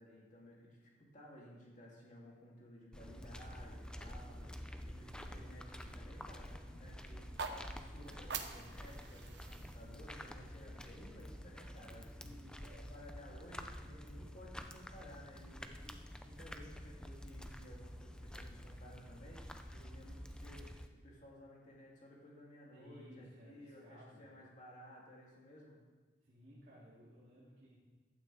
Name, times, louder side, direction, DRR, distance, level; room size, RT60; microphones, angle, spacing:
voice 1, 0.0-4.5 4.8-12.4 12.8-16.0 16.2-25.8, equal, 40° left, -4 dB, 3.0 m, -56 dB
sound 1, 2.9-20.9, equal, 5° left, 0.5 m, -49 dB
sound 2, 7.2-11.3, right 5 dB, 65° right, 0.9 m, -47 dB
voice 2, 12.0-12.9 22.7-24.3 26.2-27.7, equal, 50° right, -9 dB, 2.9 m, -58 dB
15.0 x 11.5 x 3.6 m, 1.3 s
head